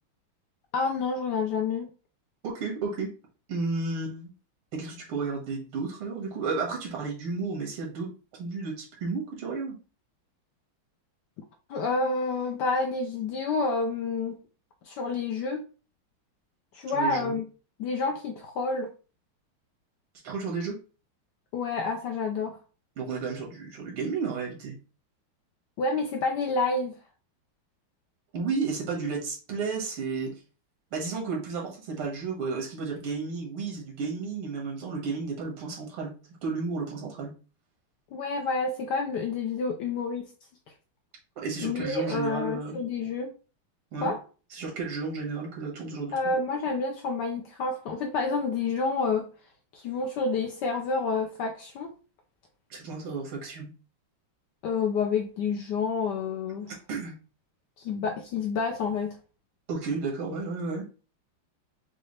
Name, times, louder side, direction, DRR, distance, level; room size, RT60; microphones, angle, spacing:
voice 1, 0.7-1.9 11.7-14.4 14.8-15.6 16.7-17.4 17.8-18.9 21.5-22.6 25.8-27.0 38.1-40.3 41.6-43.3 44.0-44.2 46.1-49.3 49.7-51.9 54.6-56.7 57.8-59.2, left 4 dB, 75° left, 1.0 m, -29 dB
voice 2, 2.4-3.1 3.5-4.3 4.7-8.1 8.3-9.8 16.9-17.4 20.2-20.8 23.0-24.8 28.3-30.3 30.9-36.1 36.4-37.3 41.4-42.8 43.9-44.1 44.5-46.1 52.7-53.7 56.7-57.2 59.7-60.9, right 4 dB, 85° right, 2.4 m, -32 dB
6.0 x 2.4 x 3.1 m
omnidirectional pair, 2.3 m